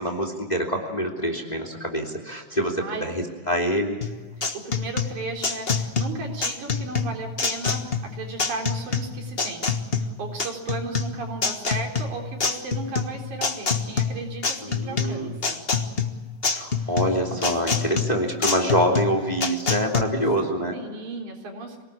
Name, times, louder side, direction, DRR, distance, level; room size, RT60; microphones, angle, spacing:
voice 1, 0.0-4.0 14.6-15.3 16.5-20.7, equal, 15° left, 1 dB, 2.7 m, -25 dB
voice 2, 2.5-3.1 4.6-9.7 10.0-15.6 16.9-17.0 17.7-17.8 20.7-21.8, right 3 dB, 90° right, 1 dB, 5.3 m, -35 dB
sound 1, 4.0-20.0, left 5 dB, 40° left, 0.8 m, -26 dB
26.0 x 19.0 x 8.5 m, 1.4 s
omnidirectional pair, 3.3 m